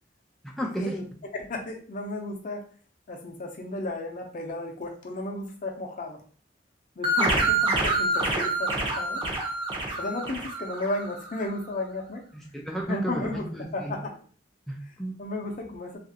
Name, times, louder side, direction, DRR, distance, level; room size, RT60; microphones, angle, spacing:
voice 1, 0.4-1.0 7.2-7.4 12.3-14.0 14.7-15.2, equal, ahead, -1 dB, 0.3 m, -33 dB
voice 2, 1.3-2.6 3.1-6.2 7.0-7.4 7.6-9.2 10.0-12.2 12.9-13.4 13.7-14.1 15.2-16.0, left 2 dB, 45° left, 2 dB, 0.6 m, -33 dB
sound 1, 7.0-11.4, right 2 dB, 30° right, 0.7 m, -27 dB
2.9 x 2.4 x 2.7 m, 0.43 s
head